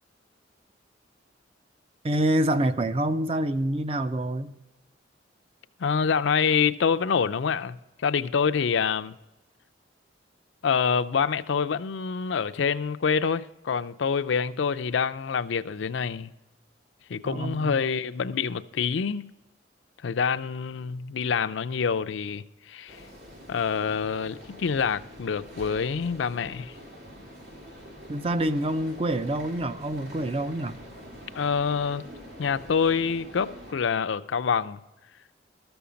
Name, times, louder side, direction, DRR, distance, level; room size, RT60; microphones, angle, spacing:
voice 1, 2.0-4.5 17.2-17.8 28.1-30.8, right 1 dB, 30° right, 0.5 m, -26 dB
voice 2, 5.8-9.2 10.6-16.3 17.1-19.3 20.0-23.0 23.5-26.8 31.3-32.1 32.4-34.8, left 6 dB, 70° left, 0.4 m, -26 dB
sound 1, 22.9-33.7, equal, 70° right, 2.4 m, -45 dB
13.5 x 7.0 x 5.1 m
head